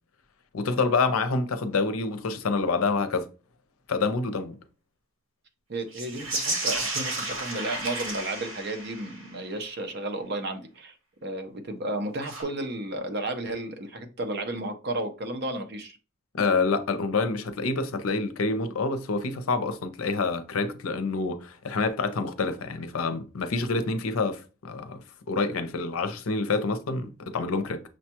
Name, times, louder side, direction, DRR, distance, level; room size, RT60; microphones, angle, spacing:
voice 1, 0.5-3.3 3.9-4.6 16.4-27.8, left 3 dB, 85° left, 0.6 m, -27 dB
voice 2, 5.7-10.9 11.2-16.0, right 2 dB, 50° right, 0.7 m, -33 dB
sound 1, 5.9-9.4 12.2-12.4, right 2 dB, 70° right, 1.4 m, -32 dB
6.3 x 2.2 x 2.9 m
head